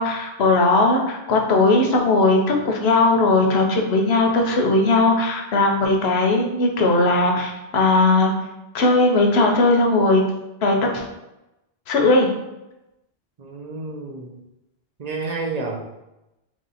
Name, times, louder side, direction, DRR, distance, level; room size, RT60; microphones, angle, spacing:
voice 1, 0.0-8.3 8.7-10.2 10.6-11.0 11.9-12.3, left 2 dB, 85° left, 2 dB, 0.9 m, -18 dB
voice 2, 13.4-14.4 15.0-16.0, right 3 dB, 50° right, 1 dB, 0.5 m, -30 dB
2.9 x 2.7 x 4.0 m, 0.93 s
omnidirectional pair, 1.0 m